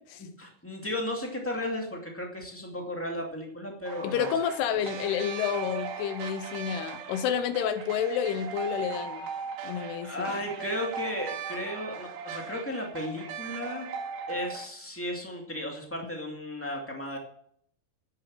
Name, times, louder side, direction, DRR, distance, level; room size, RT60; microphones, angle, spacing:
voice 1, 0.2-4.3 10.0-13.9 14.3-17.2, left 1 dB, 10° left, 0 dB, 0.7 m, -35 dB
sound 1, 3.9-14.6, right 6 dB, 85° right, 4.7 m, -38 dB
voice 2, 4.0-9.3 9.6-10.4, left 8 dB, 85° left, 10 dB, 2.8 m, -30 dB
10.5 x 9.8 x 7.4 m, 0.65 s
omnidirectional pair, 4.8 m